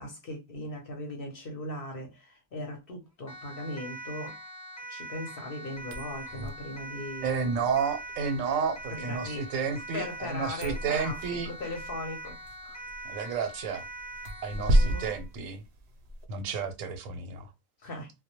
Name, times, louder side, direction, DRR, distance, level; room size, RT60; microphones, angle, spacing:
voice 1, 0.0-4.4 4.9-7.7 8.9-9.5 9.9-12.4 12.6-12.8 14.7-15.1 17.8-18.1, left 1 dB, 55° left, 0.8 m, -39 dB
Siren, 3.3-15.2, right 1 dB, 20° left, 0.4 m, -43 dB
sound 1, 5.7-16.2, equal, 65° right, 0.7 m, -33 dB
voice 2, 7.2-11.5 13.0-13.8 14.4-15.6 16.3-17.5, right 5 dB, 90° right, 1.0 m, -31 dB
2.2 x 2.0 x 2.8 m
omnidirectional pair, 1.3 m